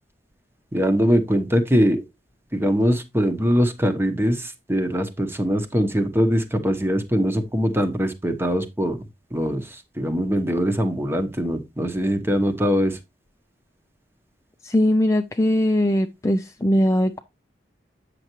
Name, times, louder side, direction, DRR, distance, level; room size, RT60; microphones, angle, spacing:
voice 1, 0.7-2.0 2.5-9.0 9.3-13.0, equal, 15° right, 0.9 m, -22 dB
voice 2, 14.6-17.2, left 1 dB, 15° left, 0.4 m, -20 dB
8.5 x 6.7 x 3.0 m
head